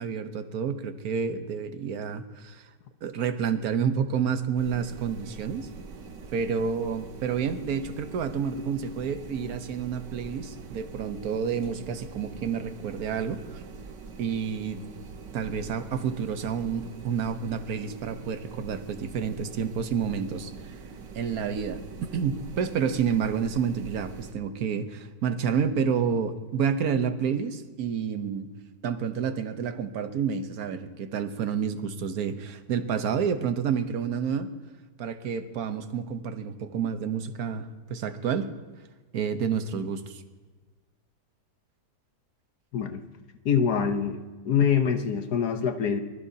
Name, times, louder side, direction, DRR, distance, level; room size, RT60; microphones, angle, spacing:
voice 1, 0.0-2.7 3.0-5.7 6.3-13.6 14.2-14.8 15.3-20.5 21.1-21.8 22.1-28.5 28.8-34.5 35.0-38.5 39.1-40.2, right 7 dB, 60° right, 9 dB, 1.4 m, -29 dB
sound 1, 4.6-24.3, right 5 dB, 90° right, 1.7 m, -44 dB
voice 2, 43.4-44.2 44.4-46.0, left 7 dB, 65° left, 8 dB, 1.4 m, -24 dB
24.0 x 20.0 x 2.8 m, 1.3 s
omnidirectional pair, 1.9 m